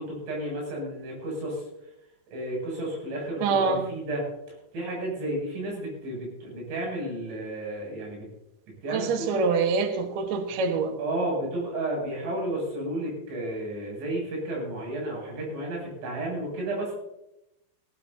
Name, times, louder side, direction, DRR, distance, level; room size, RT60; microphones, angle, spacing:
voice 1, 0.0-1.6 2.3-4.2 4.7-8.3 8.8-9.4 11.0-16.9, right 1 dB, 80° right, -2 dB, 10.0 m, -32 dB
voice 2, 3.4-3.9 8.9-10.9, right 4 dB, 65° right, 5 dB, 1.9 m, -25 dB
21.5 x 16.0 x 2.9 m, 0.87 s
omnidirectional pair, 5.3 m